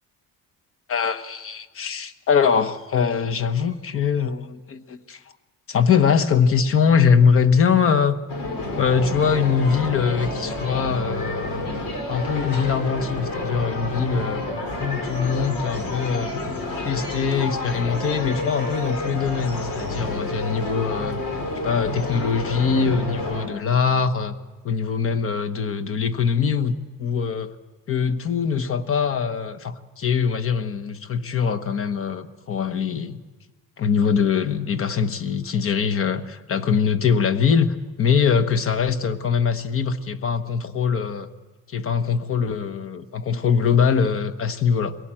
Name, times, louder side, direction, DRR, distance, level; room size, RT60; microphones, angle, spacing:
voice 1, 0.9-5.2 5.7-8.2 8.8-11.8 12.1-14.4 14.8-16.3 16.8-21.2 21.6-24.3 24.6-27.5 27.9-33.2 33.8-41.3 41.7-44.9, left 6 dB, 40° left, 9 dB, 1.1 m, -22 dB
sound 1, 8.3-23.5, left 2 dB, 85° left, 4.3 m, -29 dB
23.0 x 17.5 x 8.9 m, 1.3 s
cardioid pair, 155°, 33 cm